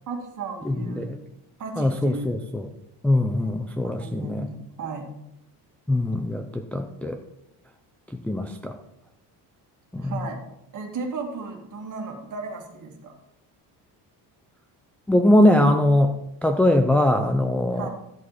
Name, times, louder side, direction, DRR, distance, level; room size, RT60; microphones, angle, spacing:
voice 1, 0.1-1.1 1.6-2.3 3.3-3.5 3.8-5.1 10.0-10.4 10.7-13.1 17.7-17.9, right 4 dB, 45° right, 2 dB, 2.1 m, -35 dB
voice 2, 0.6-1.2 1.8-2.7 3.0-4.5 5.9-7.2 8.2-8.8 9.9-10.2 15.1-16.2 16.4-17.9, left 1 dB, 5° left, 3 dB, 0.4 m, -21 dB
13.5 x 7.7 x 4.1 m, 0.86 s
cardioid pair, 145°, 44 cm